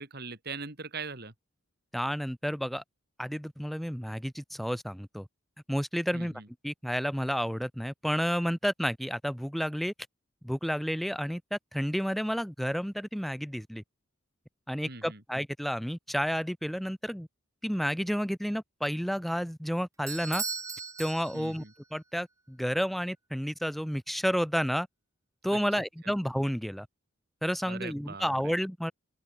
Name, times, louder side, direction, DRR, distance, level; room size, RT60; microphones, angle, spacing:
voice 1, 0.0-1.3 6.1-6.5 14.8-15.2 21.3-21.7 25.5-25.6 26.0-26.1 27.7-28.3, right 4 dB, 50° right, 3.2 m, -41 dB
voice 2, 1.9-2.8 3.2-5.3 5.7-6.3 6.6-9.9 10.4-13.8 14.7-17.3 17.6-20.4 21.0-21.6 21.9-24.9 25.4-26.9 27.4-28.9, equal, ahead, 3.9 m, -31 dB
Bell / Doorbell, 20.1-21.8, right 5 dB, 15° right, 2.7 m, -37 dB
open air
head